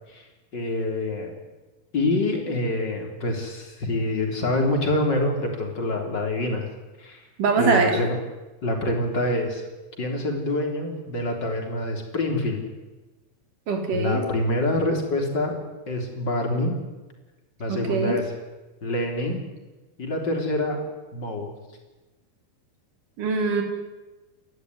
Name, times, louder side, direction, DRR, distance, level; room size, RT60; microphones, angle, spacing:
voice 1, 0.5-1.3 1.9-6.7 7.0-7.2 7.6-8.2 8.6-9.6 10.0-12.6 13.9-15.6 15.9-16.8 17.6-18.3 18.8-19.4 20.0-20.8 21.1-21.5, left 1 dB, 30° left, 3 dB, 4.1 m, -26 dB
voice 2, 7.4-7.9 13.7-14.2 17.7-18.2 23.2-23.6, right 4 dB, 60° right, 4 dB, 4.7 m, -22 dB
29.5 x 13.5 x 9.6 m, 1.2 s
omnidirectional pair, 4.3 m